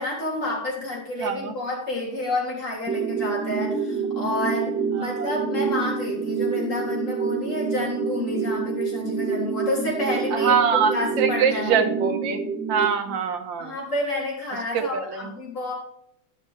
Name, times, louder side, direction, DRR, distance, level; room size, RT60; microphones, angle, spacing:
voice 1, 0.0-10.6 10.9-11.9 13.1-13.2 13.6-15.7, left 2 dB, 40° left, -3 dB, 3.6 m, -29 dB
voice 2, 1.2-1.5 5.0-5.3 10.3-12.4 12.7-13.7 14.7-15.3, right 6 dB, 70° right, 6 dB, 1.8 m, -24 dB
sound 1, 2.9-12.9, right 5 dB, 10° right, 0.8 m, -27 dB
13.0 x 5.6 x 3.5 m, 0.72 s
omnidirectional pair, 2.2 m